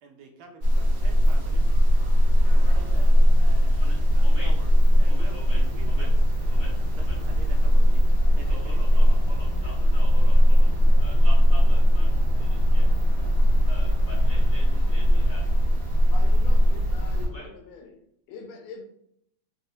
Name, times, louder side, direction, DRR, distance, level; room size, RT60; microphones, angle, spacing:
voice 1, 0.0-1.7 2.4-3.8 4.1-4.7 5.0-6.2 6.9-8.1 8.3-9.0 9.6-9.7, right 4 dB, 80° right, 4 dB, 1.4 m, -47 dB
sound 1, 0.6-17.3, equal, 60° right, 1.0 m, -19 dB
voice 2, 3.8-4.5 5.1-5.6 5.9-6.1 6.5-6.7 7.0-7.1 8.5-10.7 11.0-12.1 12.4-12.9 13.6-15.4 15.8-15.9 17.3-17.5, left 1 dB, 35° right, -8 dB, 0.6 m, -44 dB
voice 3, 16.1-18.0 18.3-18.8, left 4 dB, 80° left, 4 dB, 1.4 m, -43 dB
4.1 x 2.0 x 2.7 m, 0.74 s
omnidirectional pair, 2.3 m